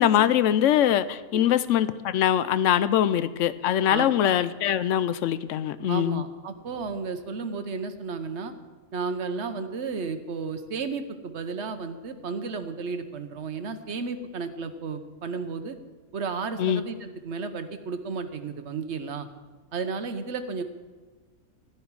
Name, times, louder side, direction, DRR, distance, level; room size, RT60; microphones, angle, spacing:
voice 1, 0.0-6.2 16.6-16.8, left 10 dB, 65° left, 14 dB, 0.9 m, -23 dB
voice 2, 5.9-8.5 8.9-15.8 16.1-19.3 19.7-20.6, right 4 dB, 55° right, 9 dB, 1.1 m, -33 dB
16.0 x 11.5 x 4.7 m, 1.3 s
omnidirectional pair, 1.5 m